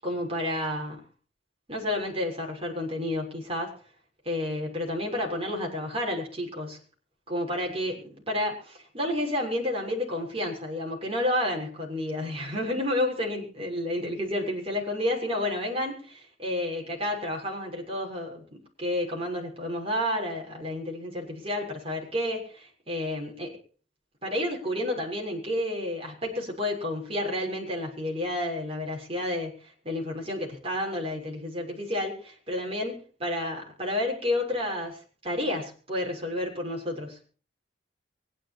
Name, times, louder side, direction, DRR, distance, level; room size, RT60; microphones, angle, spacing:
voice 1, 0.0-1.0 1.7-3.7 4.2-6.8 7.3-23.6 24.2-37.2, left 1 dB, 30° right, 0 dB, 6.7 m, -30 dB
24.0 x 11.5 x 4.6 m, 0.40 s
head